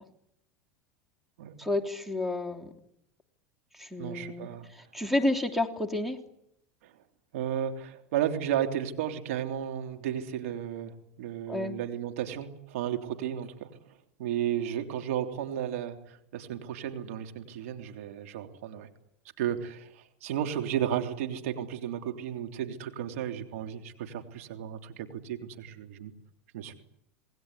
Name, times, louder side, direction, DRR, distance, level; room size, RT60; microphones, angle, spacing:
voice 1, 1.6-2.7 3.8-4.5 4.9-6.2 11.5-11.7, left 2 dB, 5° right, 7 dB, 3.2 m, -30 dB
voice 2, 4.0-4.7 6.8-6.9 7.3-18.9 19.4-26.1 26.5-26.8, right 10 dB, 75° right, 5 dB, 3.5 m, -34 dB
27.5 x 20.0 x 9.8 m, 0.80 s
hypercardioid pair, 95°, 8 cm